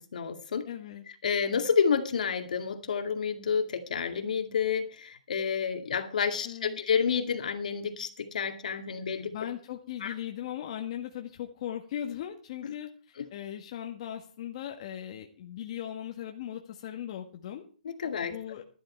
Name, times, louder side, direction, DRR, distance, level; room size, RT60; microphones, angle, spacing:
voice 1, 0.0-0.7 1.2-9.3 10.0-10.1 12.6-12.7 13.2-13.3 17.8-18.3, left 6 dB, 70° left, 6 dB, 2.3 m, -29 dB
voice 2, 0.6-1.0 6.4-6.8 9.3-17.6 18.2-18.6, left 10 dB, 45° left, 3 dB, 1.6 m, -38 dB
13.0 x 12.0 x 4.5 m, 0.39 s
hypercardioid pair, 150°, 4 cm